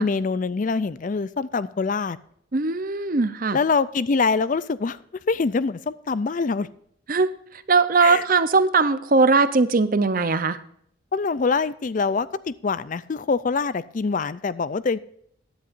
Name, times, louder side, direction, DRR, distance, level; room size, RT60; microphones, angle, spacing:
voice 1, 0.0-2.2 3.5-5.0 5.3-6.7 8.0-8.2 11.1-15.0, left 4 dB, 40° left, 17 dB, 0.4 m, -24 dB
voice 2, 2.5-3.6 7.1-7.3 7.7-10.6, right 4 dB, 40° right, 13 dB, 0.7 m, -20 dB
16.0 x 10.5 x 2.6 m, 0.68 s
head